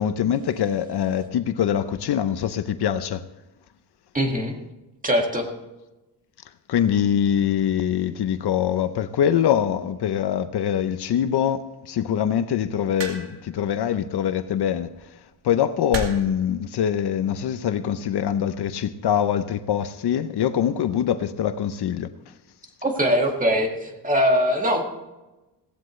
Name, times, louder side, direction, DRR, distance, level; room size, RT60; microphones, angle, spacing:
voice 1, 0.0-3.2 6.7-14.9 15.4-22.1, left 9 dB, 65° left, 0.8 m, -23 dB
voice 2, 4.1-4.6 5.0-5.5 22.8-24.8, equal, 20° right, 2.1 m, -21 dB
sound 1, 13.0-13.5 14.7-15.0 15.9-16.4 17.4-17.7, right 3 dB, 80° right, 2.4 m, -32 dB
17.0 x 15.5 x 3.2 m
wide cardioid pair, 135°, 42 cm